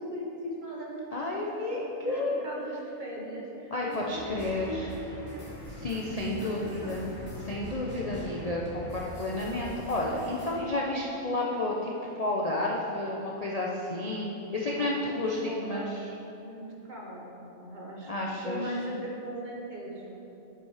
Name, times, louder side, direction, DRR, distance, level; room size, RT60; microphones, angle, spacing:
voice 1, 0.0-1.2 1.7-4.4 4.7-5.5 6.1-7.1 7.9-8.2 14.7-16.0 16.4-20.2, right 1 dB, 35° right, -3 dB, 1.2 m, -39 dB
voice 2, 1.1-2.4 3.7-4.9 5.7-7.1 7.5-11.9 12.2-16.1 18.1-18.7, left 2 dB, 40° left, -4 dB, 0.6 m, -31 dB
sound 1, 3.9-10.5, left 1 dB, 80° left, 2.3 m, -43 dB
9.5 x 5.7 x 4.9 m, 3.0 s
omnidirectional pair, 1.5 m